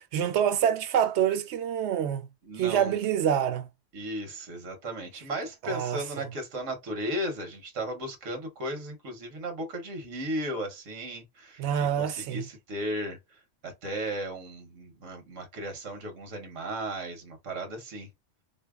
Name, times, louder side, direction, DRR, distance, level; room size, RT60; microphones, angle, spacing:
voice 1, 0.0-2.2 2.6-3.7 5.6-6.3 11.6-12.4, right 9 dB, 70° right, 0.8 m, -26 dB
voice 2, 2.4-2.9 3.9-11.6 11.9-18.1, right 1 dB, 85° right, 1.3 m, -35 dB
4.0 x 2.7 x 2.3 m
omnidirectional pair, 1.3 m